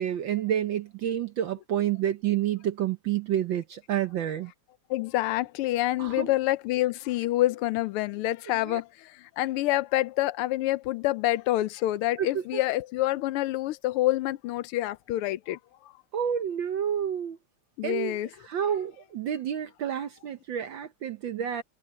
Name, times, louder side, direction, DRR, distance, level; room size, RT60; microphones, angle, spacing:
voice 1, 0.0-4.5 6.0-6.3 8.5-8.8 12.2-12.6 16.1-17.4 17.8-18.2 18.4-21.6, right 10 dB, 65° right, 1.6 m, -29 dB
voice 2, 4.9-15.6 17.8-18.3, left 16 dB, 85° left, 1.6 m, -27 dB
omnidirectional pair, 2.4 m